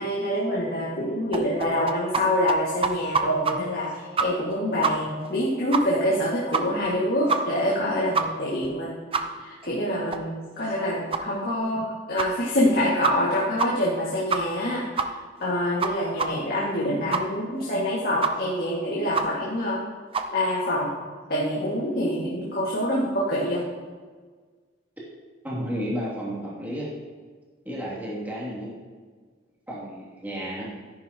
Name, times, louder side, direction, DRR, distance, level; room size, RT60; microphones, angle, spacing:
voice 1, 0.0-8.9 9.4-15.1 15.4-19.8 20.3-20.9 21.3-23.6, left 1 dB, 55° left, -6 dB, 2.1 m, -26 dB
sound 1, 1.3-2.2 2.5-2.6 2.8-3.5 3.8-3.9 4.2-4.5 4.8-4.9 5.2-5.3 5.7-5.8 6.1-6.2 6.5-6.9 7.3-7.4 7.7-7.8 8.1-8.2 8.6-8.7 9.1-9.2 9.6-9.7 10.1-10.2 10.6-10.7 11.1-11.2 11.7-11.8 12.2-12.3 12.7-12.8 13.0-13.3 13.6-13.7 13.9-14.0 14.3-14.6 15.0-15.1 15.4-15.5 15.8-15.9 16.2-16.3 16.6-16.7 17.1-17.2 17.6-17.7 18.2-18.3 18.6-18.7 19.1-19.2 19.6-19.7 20.1-20.3, right 5 dB, 30° right, 0.6 m, -25 dB
voice 2, 25.4-26.9 27.6-28.7 29.7-30.7, equal, 10° right, -7 dB, 2.7 m, -32 dB
13.5 x 11.0 x 3.0 m, 1.5 s
head